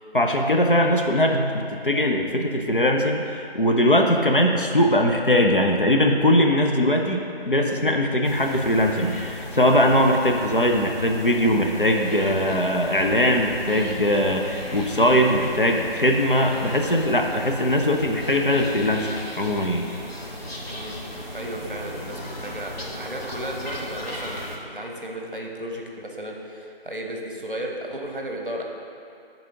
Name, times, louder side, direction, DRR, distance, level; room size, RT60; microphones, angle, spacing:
voice 1, 0.1-19.1 19.4-19.9, left 1 dB, 60° left, 2 dB, 0.6 m, -21 dB
sound 1, 8.2-24.6, equal, 75° left, 1.2 m, -36 dB
voice 2, 21.3-28.6, right 1 dB, 60° right, 0 dB, 0.9 m, -34 dB
10.0 x 4.0 x 2.9 m, 2.5 s
figure-of-eight pair, 180°, 31 cm